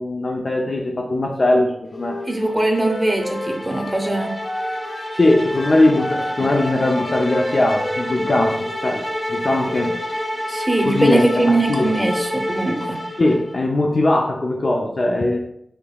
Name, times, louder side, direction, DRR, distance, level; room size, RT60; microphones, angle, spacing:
voice 1, 0.0-2.2 5.1-10.0 10.8-12.0 13.2-15.4, left 2 dB, 50° left, 0 dB, 0.4 m, -20 dB
Wind instrument woodwind instrument, 1.9-5.2 5.5-8.9, left 1 dB, 65° left, 0.9 m, -31 dB
sound 1, 2.3-13.6, left 1 dB, 20° left, 1.0 m, -29 dB
voice 2, 2.3-4.3 10.5-13.0, right 2 dB, 15° right, 2 dB, 0.7 m, -21 dB
5.0 x 2.9 x 2.2 m, 0.73 s
wide cardioid pair, 75°, 0 cm